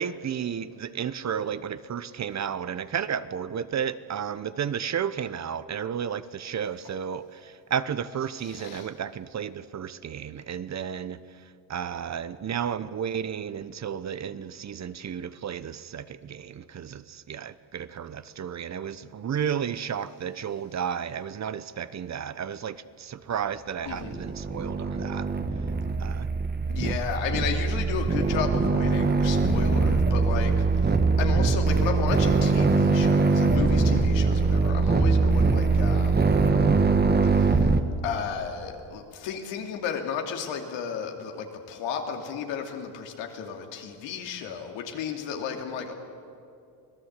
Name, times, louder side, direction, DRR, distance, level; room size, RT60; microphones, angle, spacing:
voice 1, 0.0-11.2 11.7-25.3 26.0-26.3, right 8 dB, 40° right, 15 dB, 0.9 m, -32 dB
voice 2, 8.4-8.9 23.9-24.2 26.7-36.2 37.3-37.7 38.0-45.9, left 7 dB, 85° left, 3 dB, 2.9 m, -33 dB
sound 1, 23.9-37.8, right 4 dB, 20° right, 1.4 m, -22 dB
26.0 x 17.5 x 8.2 m, 2.5 s
cardioid pair, 95°, 43 cm